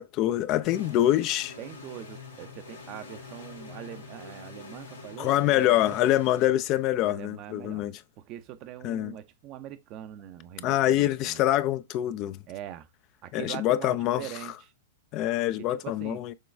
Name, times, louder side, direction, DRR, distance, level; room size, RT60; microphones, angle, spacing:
voice 1, 0.0-1.6 5.2-7.9 8.8-9.1 10.6-12.4 13.3-14.3 15.1-16.3, left 13 dB, 40° left, 0.3 m, -25 dB
sound 1, 0.6-7.1, left 4 dB, 90° left, 1.9 m, -45 dB
voice 2, 1.6-6.0 7.0-7.9 8.2-11.4 12.5-12.9 13.2-14.7 15.6-16.2, right 11 dB, 40° right, 0.5 m, -42 dB
6.4 x 2.3 x 3.3 m
hypercardioid pair, 105°, 0 cm